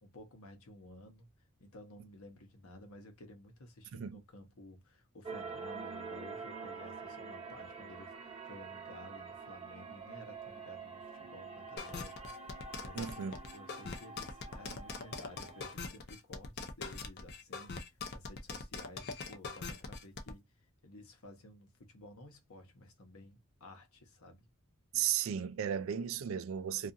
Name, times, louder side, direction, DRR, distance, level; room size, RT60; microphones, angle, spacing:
voice 1, 0.0-1.3 1.6-20.4 20.8-24.4, left 1 dB, 75° left, 0.8 m, -54 dB
sound 1, 5.2-15.7, right 4 dB, 25° right, 0.7 m, -46 dB
sound 2, 11.8-20.3, left 4 dB, 45° left, 0.5 m, -42 dB
voice 2, 12.9-13.3 24.9-26.9, right 9 dB, 65° right, 0.3 m, -35 dB
2.7 x 2.4 x 2.5 m
head